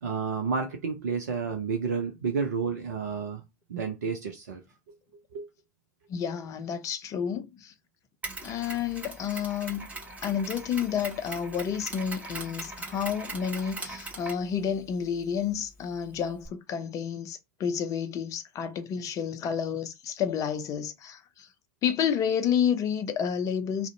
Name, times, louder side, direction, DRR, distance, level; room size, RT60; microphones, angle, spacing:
voice 1, 0.0-3.4 3.7-4.6 5.3-5.4, right 5 dB, 75° right, 0.4 m, -30 dB
voice 2, 6.1-7.7 8.4-9.9 10.2-21.5 21.8-23.9, left 8 dB, 35° left, 0.5 m, -30 dB
Mechanisms, 8.2-16.5, right 2 dB, 15° right, 1.0 m, -41 dB
2.4 x 2.0 x 2.5 m
figure-of-eight pair, 75°, 9 cm